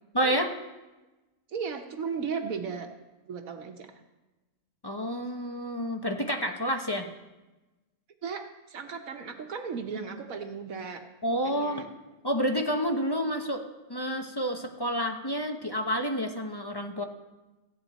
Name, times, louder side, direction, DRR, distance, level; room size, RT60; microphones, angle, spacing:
voice 1, 0.1-0.5 4.8-7.1 11.2-11.8 12.2-13.6 13.9-17.0, equal, 25° left, 4 dB, 0.5 m, -29 dB
voice 2, 1.5-2.9 3.3-4.0 8.2-11.0 11.4-11.9, right 6 dB, 70° right, 4 dB, 1.3 m, -36 dB
15.5 x 9.2 x 4.0 m, 1.1 s
omnidirectional pair, 1.5 m